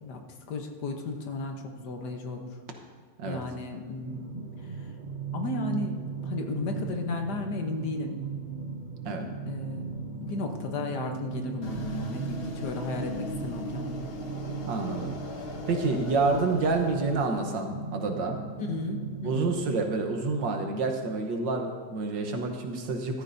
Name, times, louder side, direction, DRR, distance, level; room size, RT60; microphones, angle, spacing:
voice 1, 0.0-2.6 3.3-4.3 5.3-8.2 9.5-14.1 18.6-19.5, left 3 dB, 65° left, 4 dB, 1.6 m, -34 dB
sound 1, 4.0-19.3, right 5 dB, 60° right, 0.5 m, -38 dB
sound 2, 11.6-17.4, left 3 dB, 45° left, 0.9 m, -40 dB
voice 2, 14.7-15.1 15.7-18.4 19.2-23.2, right 3 dB, 80° right, 4 dB, 1.8 m, -28 dB
13.5 x 13.5 x 2.7 m, 1.6 s
omnidirectional pair, 2.0 m